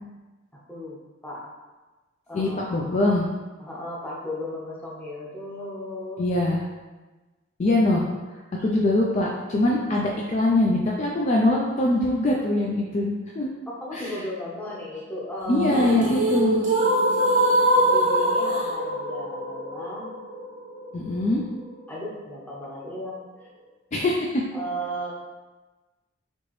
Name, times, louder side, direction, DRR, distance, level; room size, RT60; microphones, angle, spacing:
voice 1, 0.7-1.5 2.3-3.0 3.2-3.3 3.6-6.3 13.7-16.1 17.8-20.1 21.9-23.2 24.5-25.1, equal, 10° left, -5 dB, 0.8 m, -35 dB
voice 2, 2.3-3.2 6.2-6.6 7.6-8.0 8.5-13.5 13.9-14.1 15.5-16.6 20.9-21.4 23.9-24.4, left 1 dB, 35° left, -2 dB, 0.4 m, -23 dB
sound 1, 15.5-21.5, right 1 dB, 40° right, 0.7 m, -23 dB
4.3 x 2.9 x 3.1 m, 1.2 s
head